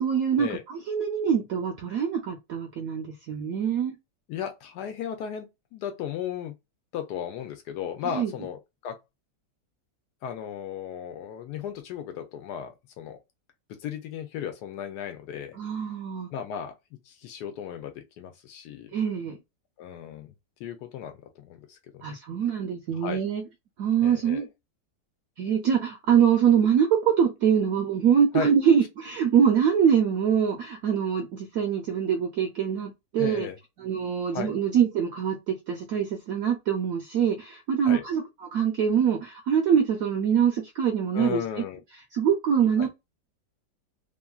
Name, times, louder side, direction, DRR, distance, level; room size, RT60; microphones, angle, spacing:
voice 1, 0.0-3.9 8.1-8.3 15.6-16.3 18.9-19.4 22.0-23.4 23.8-24.5 25.4-33.5 33.8-38.2 38.5-41.4 42.1-42.9, right 8 dB, 70° right, 0.9 m, -24 dB
voice 2, 4.3-6.5 6.9-9.0 10.2-13.2 13.7-15.6 16.3-16.7 17.0-18.9 19.8-20.3 20.6-22.2 22.9-23.2 24.0-24.5 28.3-28.5 33.2-33.6 34.3-34.5 37.8-38.0 41.1-41.8 42.8-42.9, left 8 dB, 75° left, 1.1 m, -35 dB
2.9 x 2.5 x 2.2 m
omnidirectional pair, 1.9 m